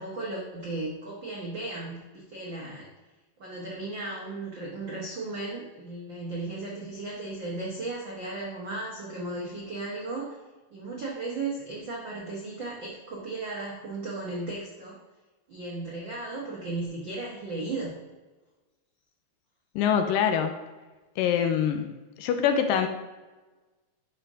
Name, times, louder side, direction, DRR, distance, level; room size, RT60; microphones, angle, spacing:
voice 1, 0.0-2.9 3.4-10.4 10.7-15.0 15.5-18.0, right 2 dB, 70° right, -3 dB, 1.1 m, -35 dB
voice 2, 19.8-20.5 21.2-21.9 22.2-22.9, left 8 dB, 80° left, 6 dB, 2.2 m, -24 dB
10.5 x 5.5 x 3.6 m, 1.2 s
omnidirectional pair, 4.2 m